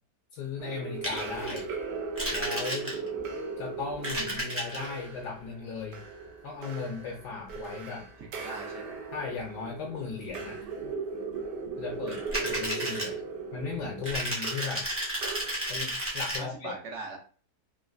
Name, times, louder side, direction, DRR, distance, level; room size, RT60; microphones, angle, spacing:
voice 1, 0.3-1.7 2.3-2.9 3.6-6.0 6.4-8.1 9.1-10.6 11.8-12.2 12.4-13.2 13.5-14.9 15.7-16.7, left 5 dB, 75° left, 1 dB, 1.1 m, -37 dB
sound 1, 0.6-15.9, right 4 dB, 85° right, 1.2 m, -38 dB
sound 2, 1.0-1.6 2.2-3.2 3.9-4.9 12.1-13.1 14.0-16.4, right 1 dB, 20° right, 0.3 m, -32 dB
voice 2, 2.6-3.2 8.2-9.1 12.1-12.6 16.3-17.2, right 3 dB, 60° right, 0 dB, 0.9 m, -43 dB
3.1 x 2.4 x 2.4 m, 0.39 s
omnidirectional pair, 1.8 m